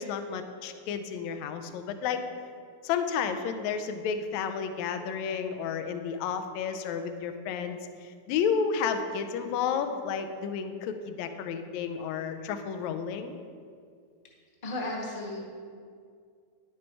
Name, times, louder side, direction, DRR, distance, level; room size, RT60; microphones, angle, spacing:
voice 1, 0.0-2.2 2.8-13.3, left 6 dB, 75° left, 8 dB, 1.8 m, -31 dB
voice 2, 14.6-15.5, left 2 dB, 25° left, -2 dB, 1.1 m, -34 dB
11.0 x 9.6 x 4.6 m, 2.2 s
omnidirectional pair, 3.9 m